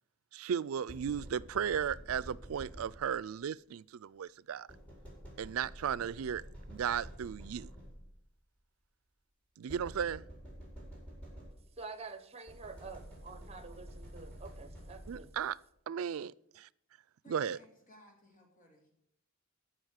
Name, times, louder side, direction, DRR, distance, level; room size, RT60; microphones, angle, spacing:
voice 1, 0.3-4.7 5.4-6.4 6.7-7.7 9.6-10.2 15.1-15.6 15.9-16.3 16.5-16.7 17.3-17.6, right 8 dB, 85° right, 0.4 m, -35 dB
sound 1, 0.9-3.3 4.7-8.3 9.7-11.9 12.5-15.5, equal, 5° left, 4.5 m, -50 dB
voice 2, 11.8-15.3, right 4 dB, 30° right, 1.0 m, -48 dB
voice 3, 17.2-18.9, left 1 dB, 40° left, 2.6 m, -60 dB
14.0 x 6.2 x 6.4 m
head